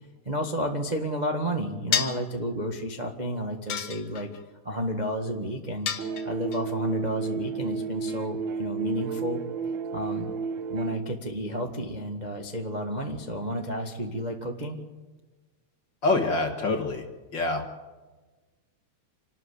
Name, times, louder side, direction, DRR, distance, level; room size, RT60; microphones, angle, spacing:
voice 1, 0.2-4.3 4.6-5.9 6.2-9.4 9.9-10.3 10.7-14.8, equal, 20° right, 2 dB, 1.1 m, -31 dB
sound 1, 1.9-2.3 3.7-4.4 5.9-6.6, left 8 dB, 75° left, 3.1 m, -29 dB
sound 2, 6.0-11.0, right 5 dB, 85° right, 1.0 m, -32 dB
voice 2, 16.0-17.1 17.3-17.7, left 2 dB, 45° left, 4 dB, 2.0 m, -25 dB
27.5 x 12.5 x 8.4 m, 1.3 s
omnidirectional pair, 3.5 m